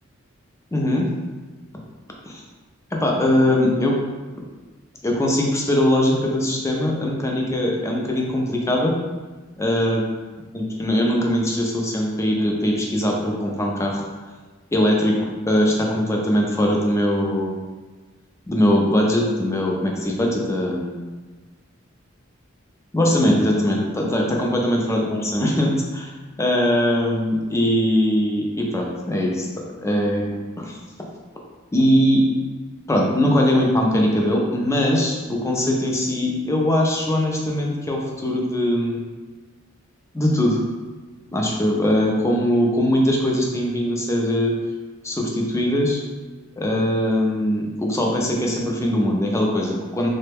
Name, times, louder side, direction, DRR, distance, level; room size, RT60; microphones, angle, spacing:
voice 1, 0.7-1.1 2.3-2.4 2.9-4.0 4.4-4.5 5.0-9.0 9.6-10.0 10.5-14.0 14.7-17.6 18.5-21.0 22.9-26.1 26.4-29.5 29.8-30.3 30.6-30.8 31.7-32.3 32.9-39.0 40.1-40.6 41.3-44.5 45.0-46.0 46.6-50.1, left 1 dB, 15° left, -1 dB, 0.4 m, -21 dB
3.2 x 2.1 x 3.3 m, 1.3 s
head